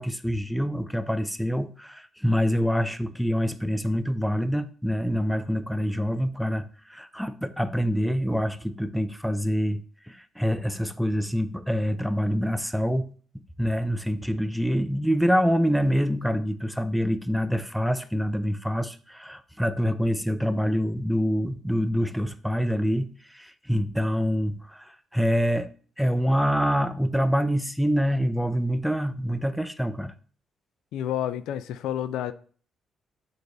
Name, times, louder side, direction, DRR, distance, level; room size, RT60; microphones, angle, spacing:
voice 1, 0.0-9.8 10.1-13.1 13.6-25.7 26.0-30.1, equal, ahead, 0.6 m, -26 dB
voice 2, 30.9-32.3, left 11 dB, 85° left, 0.4 m, -29 dB
6.8 x 4.7 x 4.0 m
cardioid pair, 90°, 0 cm